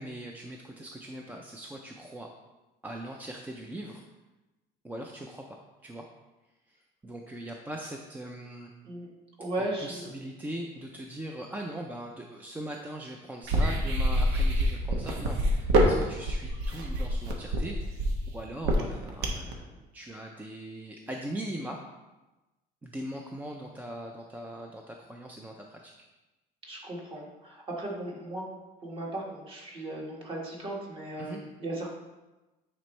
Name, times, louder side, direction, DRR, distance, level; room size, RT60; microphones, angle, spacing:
voice 1, 0.0-2.3 2.8-4.0 4.8-6.0 6.7-6.8 7.0-8.7 9.6-21.8 22.8-25.9 31.2-31.4, right 1 dB, 10° right, 1 dB, 0.4 m, -40 dB
voice 2, 9.4-10.1 26.6-28.4 28.8-31.9, right 1 dB, 30° right, -2 dB, 1.7 m, -36 dB
sound 1, 13.4-19.5, right 1 dB, 90° right, 1.1 m, -26 dB
9.0 x 4.3 x 3.2 m, 1.1 s
cardioid pair, 145°, 17 cm